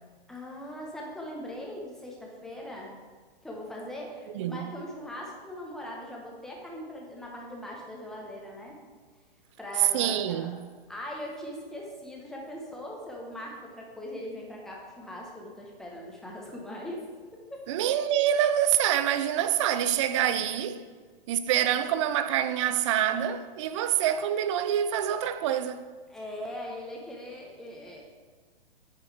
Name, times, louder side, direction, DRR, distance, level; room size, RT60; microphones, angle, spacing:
voice 1, 0.3-3.0 3.4-8.8 9.6-10.6 10.9-17.0 17.3-17.6 20.8-21.1 26.1-28.0, left 1 dB, ahead, 1.3 m, -40 dB
voice 2, 4.3-4.7 9.9-10.6 17.7-20.8 21.3-25.9, right 10 dB, 30° right, 0.4 m, -26 dB
9.1 x 5.3 x 3.5 m
figure-of-eight pair, 120°, 30 cm